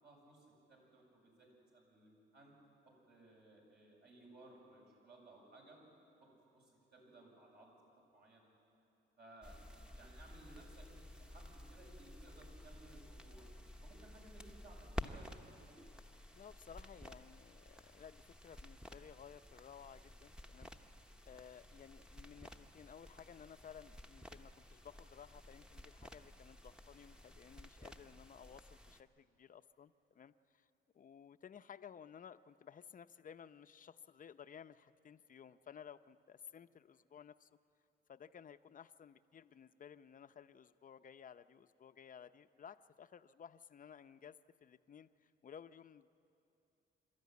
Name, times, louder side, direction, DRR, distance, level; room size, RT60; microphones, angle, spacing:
voice 1, 0.0-2.5 2.8-5.8 6.2-7.7 8.1-8.5 9.2-10.9 11.1-13.5 13.8-15.8, right 2 dB, 55° right, -2 dB, 7.7 m, -60 dB
sound 1, 9.4-29.0, left 1 dB, 5° right, 1.1 m, -53 dB
voice 2, 16.3-20.7 21.2-30.7 30.9-37.5 38.1-46.1, left 8 dB, 45° left, 11 dB, 0.7 m, -56 dB
27.0 x 13.5 x 9.5 m, 2.9 s
cardioid pair, 90°, 20 cm